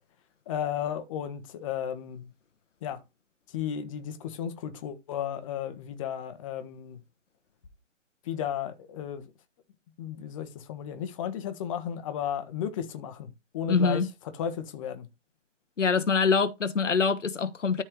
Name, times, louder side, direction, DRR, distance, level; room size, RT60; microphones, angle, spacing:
voice 1, 0.5-2.3 2.8-3.0 3.5-7.0 8.2-9.3 10.0-15.1, left 9 dB, 25° left, 1.3 m, -34 dB
voice 2, 13.7-14.1 15.8-17.8, left 5 dB, 75° left, 1.2 m, -24 dB
13.0 x 4.4 x 3.2 m
figure-of-eight pair, 140°, 37 cm